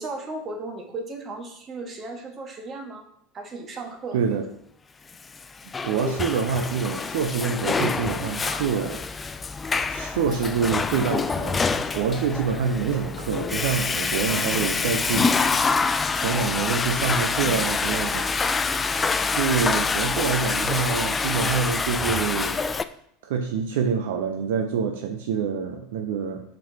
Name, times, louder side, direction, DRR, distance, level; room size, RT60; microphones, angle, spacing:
voice 1, 0.0-3.0 3.3-4.4, right 3 dB, 35° right, 3 dB, 1.6 m, -35 dB
voice 2, 4.1-4.4 5.8-9.0 9.9-15.8 16.1-18.3 19.3-22.6 23.2-26.4, right 6 dB, 65° right, 5 dB, 0.7 m, -26 dB
Water / Toilet flush, 5.4-22.8, left 4 dB, 20° left, 0.4 m, -26 dB
7.4 x 5.3 x 2.9 m, 0.69 s
figure-of-eight pair, 75°, 0 cm